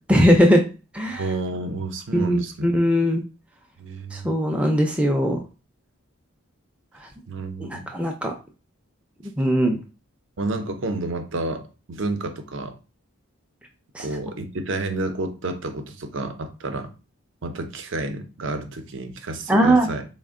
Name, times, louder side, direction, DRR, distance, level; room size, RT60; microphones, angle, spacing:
voice 1, 0.1-0.6 0.9-1.2 2.1-3.2 4.1-5.4 7.6-8.3 9.4-9.8 14.0-14.1 19.5-19.9, equal, 5° right, 0.4 m, -19 dB
voice 2, 1.1-2.7 3.8-4.3 7.3-7.8 10.4-12.8 14.0-16.9 17.4-20.1, right 2 dB, 60° right, 0.6 m, -30 dB
4.1 x 2.1 x 3.5 m
head